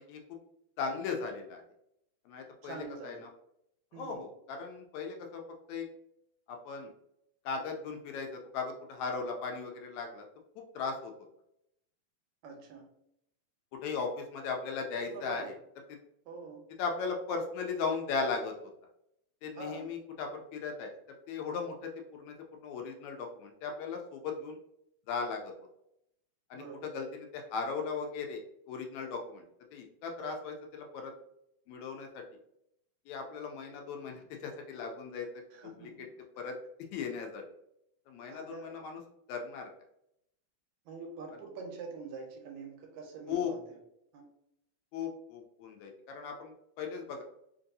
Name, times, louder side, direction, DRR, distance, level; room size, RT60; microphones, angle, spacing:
voice 1, 0.8-1.6 2.3-3.3 3.9-5.4 5.7-5.9 6.5-6.9 7.5-10.3 10.6-11.1 13.8-15.6 15.9-16.0 16.8-18.5 19.4-20.9 21.3-24.6 25.1-25.5 26.5-29.5 29.7-31.1 31.7-32.2 33.1-35.3 35.6-35.9 36.4-36.6 36.9-37.4 38.1-39.0 39.3-39.7 43.3-43.5 44.9-47.2, left 5 dB, 80° left, 3 dB, 1.8 m, -37 dB
voice 2, 2.6-3.2 3.9-4.2 12.4-12.9 15.1-15.6 16.3-16.6 19.6-19.9 26.5-26.9 30.2-30.3 35.5-36.1 38.3-38.8 40.9-43.8 44.1-44.2, right 4 dB, 80° right, 2 dB, 2.0 m, -45 dB
4.5 x 2.6 x 2.6 m, 0.79 s
omnidirectional pair, 3.4 m